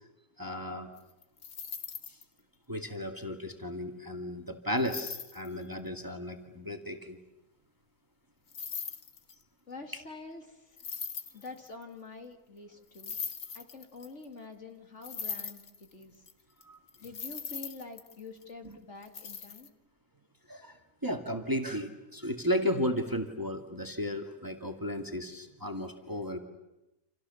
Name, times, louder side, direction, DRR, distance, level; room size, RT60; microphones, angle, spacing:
voice 1, 0.4-0.9 2.7-7.2 9.9-10.0 16.6-16.8 18.6-18.8 20.5-20.8 21.0-26.4, equal, 15° right, 5 dB, 2.3 m, -34 dB
sound 1, 1.0-2.2 4.8-5.5 8.5-9.4 10.8-11.8 12.9-14.2 15.0-16.3 16.6-16.7 16.9-18.5 19.0-19.7, left 6 dB, 80° left, 2.1 m, -40 dB
voice 2, 9.7-10.8 11.3-13.2 13.5-16.2 17.0-19.7, left 3 dB, 50° left, 5 dB, 2.7 m, -46 dB
30.0 x 27.5 x 7.1 m, 0.96 s
omnidirectional pair, 1.5 m